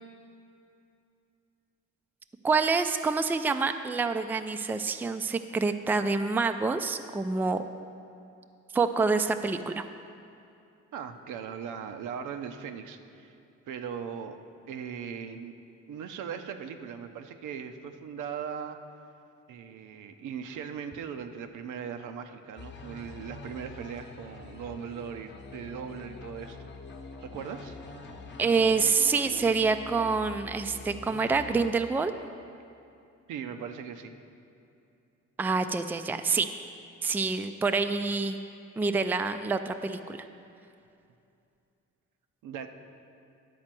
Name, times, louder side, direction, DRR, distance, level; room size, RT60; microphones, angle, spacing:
voice 1, 2.4-7.6 8.7-9.8 28.4-32.1 35.4-36.5 37.0-38.4 38.8-40.3, right 4 dB, 5° right, 8 dB, 0.3 m, -27 dB
voice 2, 10.9-13.4 13.7-14.4 14.7-15.5 15.9-18.8 19.5-26.7 27.2-27.8 33.3-34.1 42.4-42.7, right 7 dB, 85° right, 7 dB, 0.7 m, -39 dB
sound 1, 22.6-31.6, left 3 dB, 35° left, 0.9 m, -45 dB
11.0 x 4.3 x 7.5 m, 2.6 s
cardioid pair, 90°, 30 cm